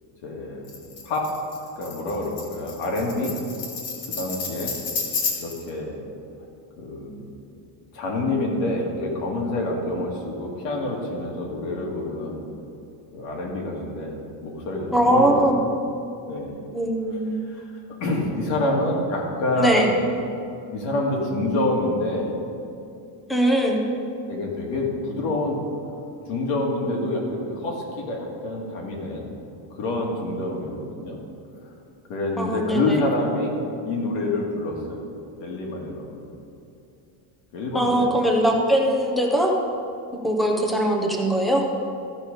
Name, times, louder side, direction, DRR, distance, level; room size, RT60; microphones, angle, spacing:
voice 1, 0.2-0.7 1.0-1.3 1.8-3.4 4.1-4.7 5.4-6.0 6.8-7.2 7.9-12.4 13.1-15.5 16.3-16.6 17.4-17.6 18.0-19.9 20.7-22.3 24.3-25.6 26.3-29.3 29.7-31.2 32.1-35.0 35.4-36.3 37.5-38.1, left 2 dB, 75° left, -1 dB, 2.2 m, -27 dB
Tambourine, 0.7-5.7, left 5 dB, 55° left, 1.4 m, -31 dB
voice 2, 14.9-15.6 16.7-17.4 19.6-19.9 23.3-23.8 32.4-33.0 37.7-39.5 40.2-41.7, right 1 dB, ahead, 1 dB, 0.3 m, -21 dB
14.0 x 5.3 x 4.9 m, 2.7 s
cardioid pair, 170°, 47 cm